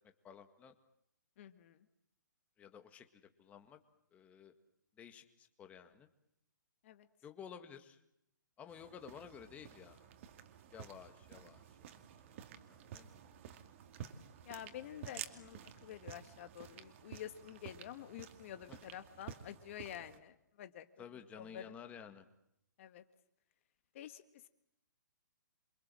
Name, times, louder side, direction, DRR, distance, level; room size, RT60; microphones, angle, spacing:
voice 1, 0.2-0.7 2.6-3.1 3.4-3.8 4.1-4.5 5.0-6.1 7.2-8.0 8.6-10.1 10.7-11.6 12.7-13.2 18.7-18.8 21.0-22.3, left 7 dB, 15° left, 6 dB, 1.9 m, -53 dB
voice 2, 1.4-1.9 6.8-7.1 14.5-20.9 21.3-21.8 22.8-23.0 23.9-24.5, left 11 dB, 40° left, 9 dB, 1.7 m, -49 dB
sound 1, 8.7-20.2, right 9 dB, 40° right, 2.4 m, -52 dB
28.5 x 24.5 x 7.7 m, 0.77 s
hypercardioid pair, 155°, 11 cm